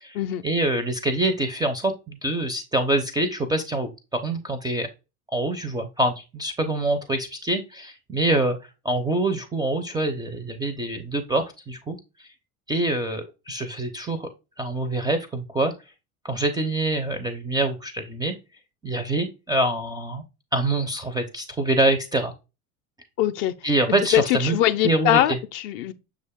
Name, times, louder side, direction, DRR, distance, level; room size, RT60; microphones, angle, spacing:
voice 1, 0.4-3.9 4.2-4.9 5.3-8.6 8.8-12.3 12.7-14.3 14.6-15.7 16.2-18.4 18.8-20.2 20.5-22.3 23.6-24.6 24.8-25.2, right 2 dB, 10° right, 0.4 m, -25 dB
voice 2, 23.2-23.5 24.1-25.9, left 13 dB, 45° left, 0.5 m, -22 dB
6.3 x 2.4 x 3.5 m
figure-of-eight pair, 70°, 46 cm